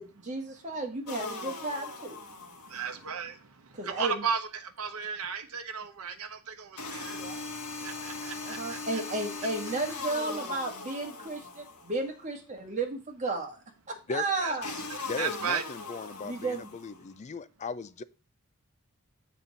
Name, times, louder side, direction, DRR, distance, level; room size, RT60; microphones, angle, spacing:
voice 1, 0.0-2.2 3.8-4.2 7.1-7.4 8.4-13.6 14.1-14.8 16.2-16.7, right 2 dB, 35° right, 1.6 m, -33 dB
sound 1, 1.1-3.0 6.8-12.0 14.6-17.0, left 3 dB, 85° left, 1.4 m, -39 dB
voice 2, 2.4-7.2 7.8-9.0 14.4-14.5 14.9-15.6, right 6 dB, 70° right, 0.9 m, -35 dB
voice 3, 15.1-18.0, left 4 dB, 30° left, 0.4 m, -37 dB
7.3 x 4.2 x 5.1 m
head